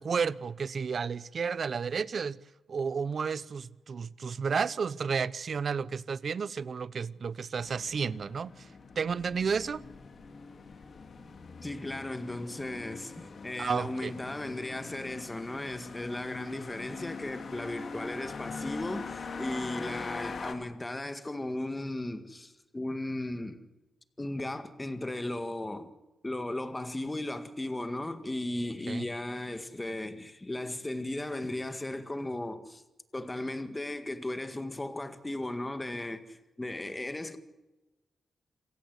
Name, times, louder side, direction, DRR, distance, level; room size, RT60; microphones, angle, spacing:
voice 1, 0.0-2.4 2.7-8.7 9.0-9.8 13.6-14.1 28.9-29.0, right 6 dB, 50° right, 0.7 m, -32 dB
sound 1, 7.5-20.6, left 4 dB, 50° left, 2.5 m, -43 dB
voice 2, 11.6-23.6 24.2-25.9 26.2-32.8 33.1-37.4, left 1 dB, 15° left, 1.8 m, -36 dB
27.5 x 17.0 x 8.1 m
wide cardioid pair, 130°, 0 cm